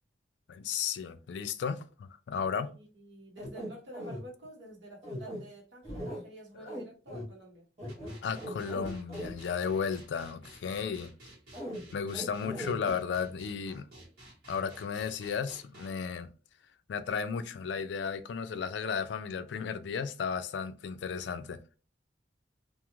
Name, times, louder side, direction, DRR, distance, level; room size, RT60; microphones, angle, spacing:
voice 1, 0.5-2.7 6.6-6.7 8.2-11.1 11.9-13.9 14.5-16.3 16.9-21.6, left 6 dB, 75° left, 0.3 m, -34 dB
voice 2, 2.6-7.6 8.4-8.7, right 1 dB, 80° right, 1.2 m, -50 dB
sound 1, 3.4-4.2 5.0-5.4 5.8-6.2 6.7-6.8 7.1-7.2 7.8-9.3 11.5-11.8 12.1-12.9, equal, 35° right, 1.1 m, -39 dB
sound 2, 7.9-15.9, right 1 dB, 60° right, 1.2 m, -52 dB
2.5 x 2.4 x 3.0 m
head